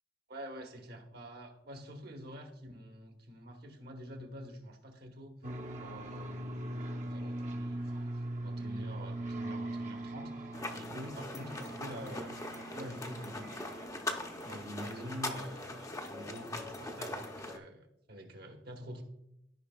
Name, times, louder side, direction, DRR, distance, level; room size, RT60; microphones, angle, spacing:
voice 1, 0.3-5.3 5.7-12.2 12.6-19.0, equal, 60° right, 4 dB, 1.1 m, -47 dB
sound 1, 5.4-15.0, right 1 dB, 45° right, 0.7 m, -41 dB
sound 2, 10.5-17.6, left 2 dB, 20° left, 0.6 m, -41 dB
13.5 x 5.2 x 2.3 m, 0.82 s
head